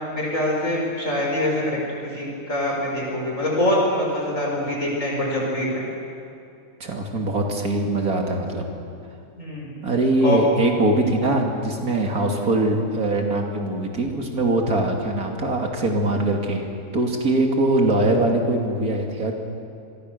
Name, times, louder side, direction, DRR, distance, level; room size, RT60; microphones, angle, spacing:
voice 1, 0.1-5.8 9.4-9.7 10.2-10.4, left 1 dB, 60° left, -2 dB, 5.6 m, -24 dB
voice 2, 6.8-8.6 9.8-16.7 16.9-19.4, right 2 dB, 85° right, 2 dB, 3.1 m, -22 dB
26.0 x 22.0 x 6.8 m, 2.6 s
omnidirectional pair, 1.5 m